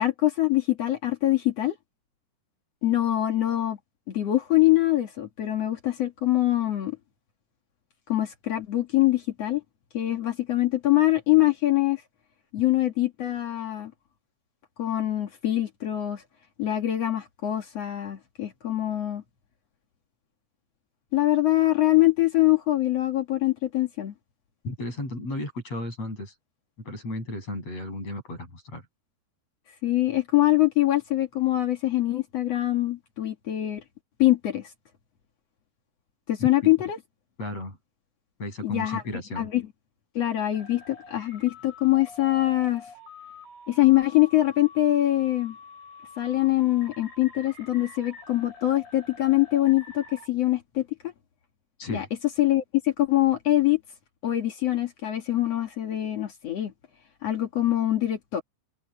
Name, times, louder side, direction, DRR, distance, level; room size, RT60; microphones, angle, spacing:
voice 1, 0.0-1.8 2.8-3.8 4.1-7.0 8.1-9.6 9.9-12.0 12.5-13.9 14.8-16.2 16.6-19.2 21.1-24.1 29.8-33.8 34.2-34.7 36.3-37.0 38.6-39.0 39.4-39.6 40.1-42.9 43.7-45.6 46.2-51.1 51.9-52.1 52.4-53.8 54.2-56.7 57.2-58.4, left 15 dB, 50° left, 2.0 m, -24 dB
voice 2, 24.6-26.3 26.8-28.9 36.4-36.7 37.4-37.8 38.4-39.5 51.8-52.1, left 1 dB, 35° left, 8.6 m, -34 dB
sound 1, 40.5-50.3, left 4 dB, 80° left, 10.5 m, -47 dB
omnidirectional pair, 5.0 m